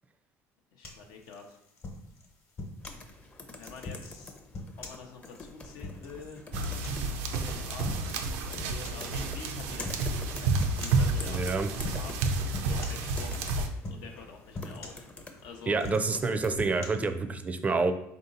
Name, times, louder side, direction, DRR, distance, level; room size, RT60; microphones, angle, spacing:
voice 1, 0.7-1.6 3.5-4.3 4.8-6.5 7.3-12.2 12.7-15.1 15.4-15.8, left 5 dB, 75° left, 2 dB, 0.6 m, -47 dB
sound 1, 0.8-3.0 3.6-7.4 7.8-8.3 8.6-9.1 9.8-10.1 10.6-11.1 11.8-12.2 12.5-13.5 13.8-14.2 14.5-15.4 15.7-16.9, left 2 dB, 40° left, 1.0 m, -41 dB
sound 2, 2.8-16.5, left 3 dB, 20° left, 0.6 m, -47 dB
sound 3, 6.5-13.7, right 3 dB, 85° right, 0.4 m, -30 dB
voice 2, 11.3-11.7 15.7-17.9, right 4 dB, 20° right, 8 dB, 0.4 m, -28 dB
3.7 x 2.7 x 3.9 m, 0.76 s
supercardioid pair, 95°, 7 cm